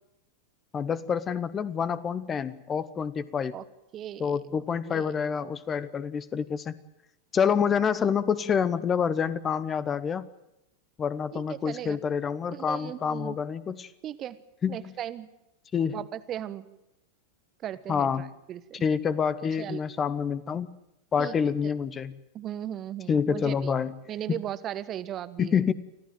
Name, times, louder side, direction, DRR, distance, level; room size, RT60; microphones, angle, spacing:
voice 1, 0.7-3.6 4.2-6.7 7.3-10.3 11.0-13.9 14.6-14.9 15.7-16.0 17.9-18.3 18.8-20.7 21.1-22.1 23.1-24.0 24.3-24.4 25.4-25.7, left 7 dB, 20° left, 17 dB, 0.9 m, -27 dB
voice 2, 3.9-4.4 4.9-5.1 11.3-12.0 12.5-13.4 14.0-14.4 14.7-15.3 15.9-16.7 17.6-18.8 19.6-19.8 21.2-21.4 21.6-21.7 22.3-23.7 24.1-25.6, right 11 dB, 30° right, 15 dB, 1.2 m, -37 dB
25.5 x 15.0 x 9.2 m, 0.88 s
figure-of-eight pair, 90°, 0 cm